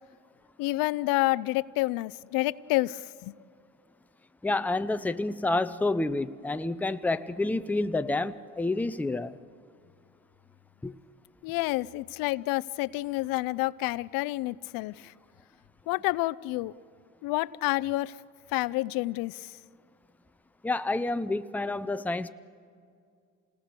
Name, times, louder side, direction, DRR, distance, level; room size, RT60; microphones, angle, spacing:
voice 1, 0.6-3.3 11.4-15.1 15.9-16.7 17.2-18.2 18.5-19.5, left 19 dB, 80° left, 16 dB, 0.5 m, -29 dB
voice 2, 4.4-9.4 10.8-10.9 20.6-22.3, left 2 dB, 5° left, 11 dB, 0.6 m, -29 dB
27.5 x 19.0 x 6.7 m, 2.3 s
cardioid pair, 100°, 34 cm